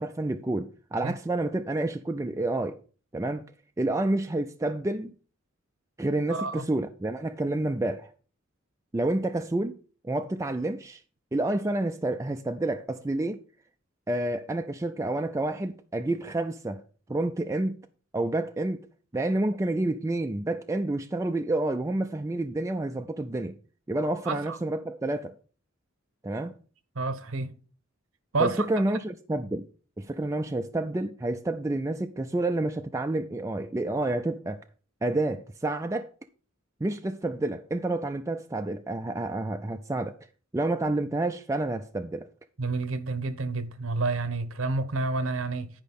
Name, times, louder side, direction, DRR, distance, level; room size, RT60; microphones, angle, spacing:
voice 1, 0.0-2.8 3.1-3.4 3.8-5.1 6.0-8.1 8.9-9.8 10.0-11.0 11.3-13.4 14.1-16.8 17.1-17.8 18.1-18.8 19.1-23.6 23.9-25.4 26.2-26.5 28.4-29.6 30.0-34.6 35.0-36.1 36.8-40.2 40.5-42.3, right 2 dB, 15° right, 0.4 m, -29 dB
voice 2, 6.3-6.6 24.3-24.6 27.0-27.5 28.3-28.7 42.6-45.7, right 3 dB, 80° right, 1.0 m, -29 dB
10.0 x 5.2 x 5.3 m
head